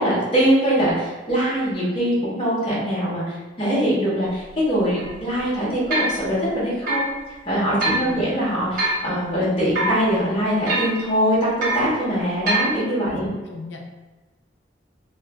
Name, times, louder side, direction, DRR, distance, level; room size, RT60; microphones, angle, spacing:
voice 1, 0.0-7.2 7.5-13.3, equal, 30° left, -9 dB, 1.0 m, -22 dB
sound 1, 4.2-4.3 5.0-5.1 5.9-6.2 6.9-7.1 7.8-8.0 8.8-9.1 9.7-10.0 10.7-11.0 11.6-11.9 12.5-12.7, right 2 dB, 50° right, 0.7 m, -23 dB
voice 2, 7.8-8.3 13.1-13.8, equal, 80° left, 1 dB, 0.5 m, -35 dB
3.2 x 2.3 x 2.3 m, 1.2 s
head